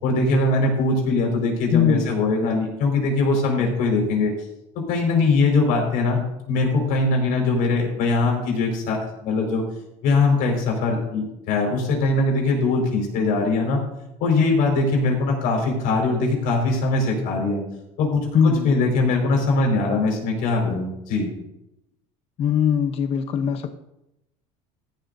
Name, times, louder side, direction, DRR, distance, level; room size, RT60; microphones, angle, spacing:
voice 1, 0.0-4.3 4.9-9.6 10.0-13.8 14.2-17.6 18.0-21.3, left 3 dB, 70° left, 1 dB, 5.2 m, -21 dB
voice 2, 1.7-2.1 18.3-18.7 22.4-23.7, left 7 dB, 40° left, 7 dB, 0.9 m, -20 dB
15.5 x 12.5 x 2.7 m, 0.86 s
cardioid pair, 135°, 15 cm